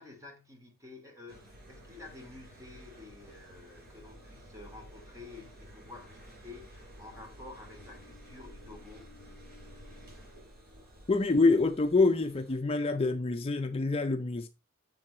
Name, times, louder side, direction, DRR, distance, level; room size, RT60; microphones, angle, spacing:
voice 1, 0.0-9.1, left 3 dB, 15° right, 2.6 m, -50 dB
sound 1, 1.3-12.6, equal, 50° right, 4.6 m, -52 dB
voice 2, 11.1-14.5, left 3 dB, 30° left, 0.5 m, -26 dB
7.7 x 6.8 x 4.3 m
head